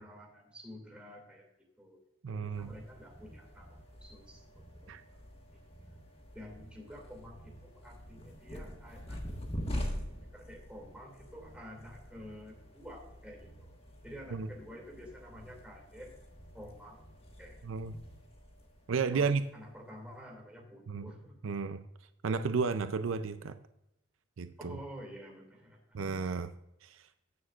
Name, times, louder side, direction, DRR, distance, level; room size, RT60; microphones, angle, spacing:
voice 1, 0.0-2.0 2.3-5.2 5.5-6.0 6.3-9.2 10.2-13.8 14.0-16.1 16.5-17.0 17.4-17.6 19.1-21.5 24.6-26.0, equal, 5° right, 0 dB, 2.3 m, -50 dB
voice 2, 2.2-2.7 4.9-5.0 14.3-14.5 17.6-17.9 18.9-19.4 20.9-21.1 21.4-21.8 22.2-23.6 24.4-24.8 25.9-26.5 26.8-27.0, right 5 dB, 75° right, 10 dB, 0.5 m, -32 dB
sound 1, 2.5-19.9, equal, 30° left, 1.4 m, -45 dB
16.5 x 6.5 x 2.4 m, 0.84 s
head